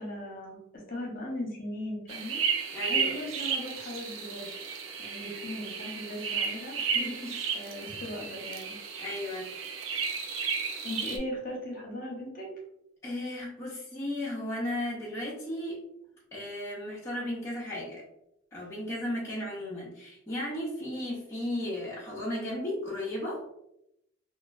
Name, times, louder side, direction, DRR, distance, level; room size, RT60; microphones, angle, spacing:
voice 1, 0.0-4.5 5.0-6.8 7.5-8.8 10.8-12.5, left 1 dB, 45° left, -2 dB, 0.8 m, -38 dB
sound 1, 2.1-11.2, right 6 dB, 80° right, 0.4 m, -33 dB
voice 2, 2.7-3.1 6.9-7.4 9.0-9.5 13.0-15.8 16.3-18.0 18.5-23.4, left 1 dB, 15° left, -8 dB, 0.5 m, -35 dB
3.0 x 2.2 x 2.3 m, 0.82 s
head